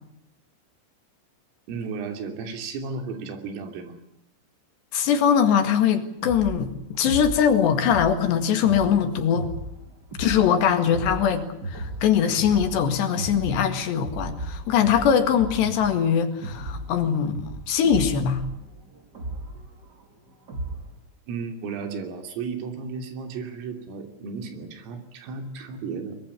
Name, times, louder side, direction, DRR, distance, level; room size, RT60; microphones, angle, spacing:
voice 1, 1.7-4.0 21.3-26.2, right 5 dB, 90° right, 6 dB, 5.6 m, -34 dB
voice 2, 4.9-9.5 10.2-18.4, left 8 dB, 65° left, 7 dB, 3.8 m, -22 dB
sound 1, 6.2-21.0, right 1 dB, 35° right, 1.7 m, -36 dB
22.5 x 22.5 x 8.4 m, 0.77 s
omnidirectional pair, 5.7 m